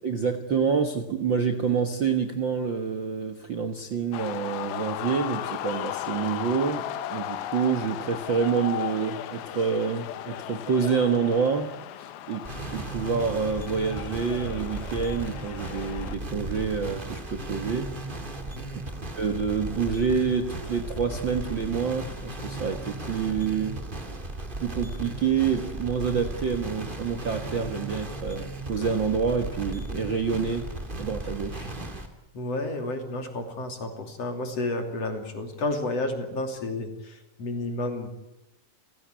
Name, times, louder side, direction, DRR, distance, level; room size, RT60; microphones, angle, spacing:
voice 1, 0.0-11.7 12.0-17.9 19.2-23.8 24.5-30.7 31.0-32.0, right 6 dB, 85° right, 6 dB, 1.0 m, -27 dB
sound 1, 4.1-16.2, left 12 dB, 75° left, 2.9 m, -36 dB
sound 2, 12.4-32.1, right 2 dB, 20° right, 1.7 m, -36 dB
voice 2, 18.5-18.8 32.3-38.1, left 2 dB, 40° left, 6 dB, 3.7 m, -31 dB
29.5 x 16.5 x 9.6 m, 0.94 s
omnidirectional pair, 4.6 m